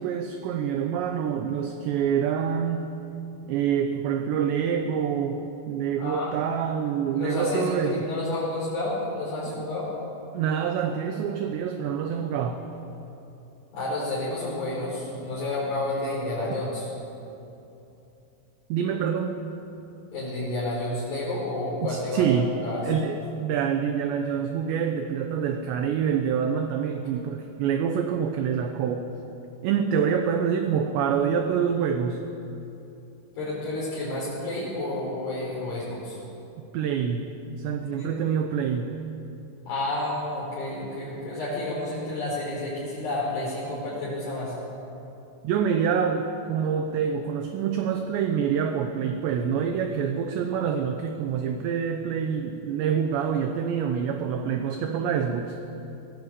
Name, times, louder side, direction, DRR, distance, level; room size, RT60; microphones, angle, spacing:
voice 1, 0.0-2.9 3.5-8.0 10.3-12.6 18.7-19.4 21.8-22.5 22.8-29.1 29.6-32.2 36.7-37.3 37.6-38.9 45.4-55.6, right 7 dB, 75° right, 6 dB, 2.8 m, -26 dB
voice 2, 6.0-6.7 7.1-9.9 13.7-16.9 20.1-22.9 33.3-36.2 38.0-38.1 39.7-44.6, left 2 dB, 55° left, -8 dB, 6.5 m, -30 dB
22.5 x 17.5 x 8.3 m, 2.8 s
omnidirectional pair, 5.9 m